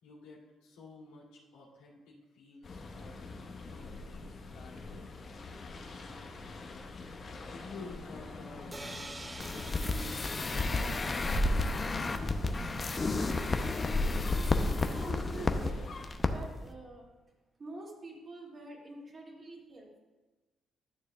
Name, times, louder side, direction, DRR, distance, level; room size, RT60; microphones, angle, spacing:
voice 1, 0.0-3.3 3.7-5.1 7.4-11.8, left 3 dB, 90° left, -7 dB, 2.5 m, -52 dB
sound 1, 2.6-16.1, left 1 dB, 50° left, 1.2 m, -39 dB
sound 2, 8.7-12.5, right 2 dB, 20° right, 0.6 m, -48 dB
sound 3, 9.4-15.7 16.0-16.3 16.6-16.7, left 3 dB, 35° left, 0.7 m, -32 dB
voice 2, 14.9-17.1 17.6-20.0, right 2 dB, 40° right, -2 dB, 2.4 m, -46 dB
12.5 x 6.6 x 2.4 m, 1.2 s
supercardioid pair, 60°, 0 cm